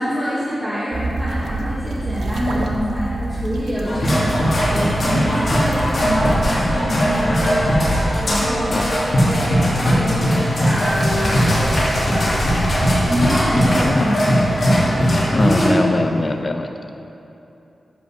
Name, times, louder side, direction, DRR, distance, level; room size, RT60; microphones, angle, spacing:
voice 1, 0.0-7.8 8.2-11.8 12.1-12.7 13.1-14.2 15.4-15.8, equal, 15° right, -11 dB, 1.9 m, -25 dB
sound 1, 0.9-6.5, right 2 dB, 80° right, 0.8 m, -27 dB
sound 2, 3.8-15.7, equal, 50° left, 2.3 m, -19 dB
sound 3, 10.0-14.9 15.2-15.3, left 1 dB, 65° left, 2.0 m, -33 dB
voice 2, 15.3-16.7, left 2 dB, 30° left, 6 dB, 0.3 m, -21 dB
9.5 x 5.4 x 6.4 m, 2.9 s
wide cardioid pair, 150°, 0 cm